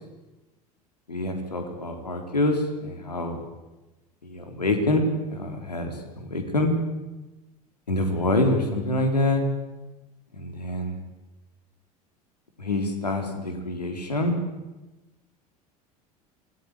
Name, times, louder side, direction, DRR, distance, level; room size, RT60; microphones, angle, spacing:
voice 1, 1.1-3.4 4.2-6.7 7.9-9.4 10.3-10.9 12.6-14.4, left 2 dB, 85° left, 4 dB, 4.2 m, -26 dB
27.0 x 21.0 x 9.9 m, 1.1 s
figure-of-eight pair, 75°, 20 cm